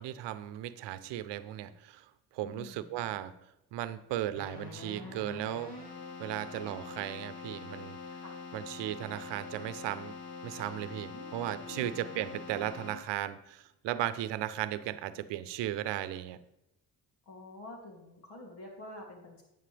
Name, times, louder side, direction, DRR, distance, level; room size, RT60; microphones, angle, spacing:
voice 1, 0.0-2.1 2.3-3.3 3.7-5.8 6.2-8.0 8.5-10.1 10.4-16.4, right 13 dB, 90° right, 13 dB, 0.7 m, -36 dB
voice 2, 2.4-3.1 8.2-8.3 11.1-12.2 17.3-19.4, left 1 dB, 85° left, 0 dB, 2.7 m, -48 dB
Keyboard (musical), 4.3-13.3, left 4 dB, 60° left, 2.6 m, -44 dB
11.5 x 7.9 x 3.4 m, 0.91 s
cardioid pair, 70°, 41 cm